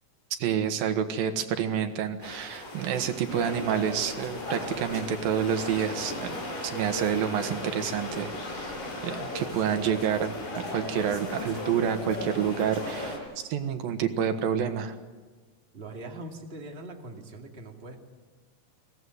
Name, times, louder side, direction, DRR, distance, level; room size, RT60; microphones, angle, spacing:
voice 1, 0.4-6.4 6.6-8.8 9.0-10.3 10.7-13.1 13.5-14.9, right 8 dB, 85° right, 8 dB, 3.2 m, -28 dB
sound 1, 2.2-13.2, left 1 dB, 70° left, 8.5 m, -40 dB
sound 2, 3.3-13.2, left 2 dB, 45° left, 5.0 m, -38 dB
voice 2, 15.7-18.0, right 2 dB, 20° right, 1 dB, 2.3 m, -41 dB
23.5 x 17.0 x 9.6 m, 1.3 s
omnidirectional pair, 4.0 m